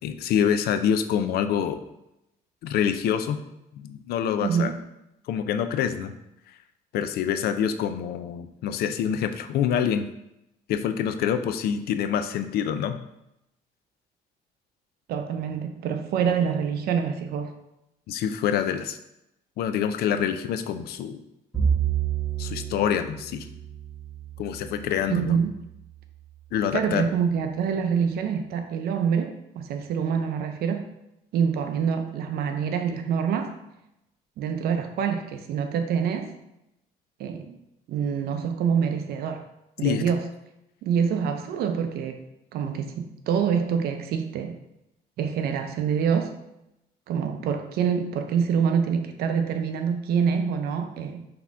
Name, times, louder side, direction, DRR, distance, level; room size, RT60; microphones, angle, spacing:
voice 1, 0.0-1.8 2.6-3.4 3.7-4.7 5.3-6.1 6.9-10.1 10.7-13.0 18.1-19.0 19.6-21.2 22.4-23.5 24.4-25.4 26.5-27.1 39.8-40.0, left 8 dB, 70° left, 9 dB, 0.4 m, -26 dB
voice 2, 4.4-4.8 15.1-17.6 25.1-25.6 26.7-30.9 31.3-33.6 34.4-36.3 37.2-37.6 37.9-39.5 39.8-40.3 40.8-42.2 42.5-44.6 45.2-46.3 47.1-51.2, right 7 dB, 70° right, 7 dB, 0.5 m, -26 dB
Bowed string instrument, 21.5-25.9, right 8 dB, 5° right, 1.2 m, -30 dB
4.0 x 2.8 x 3.6 m, 0.86 s
cardioid pair, 110°, 17 cm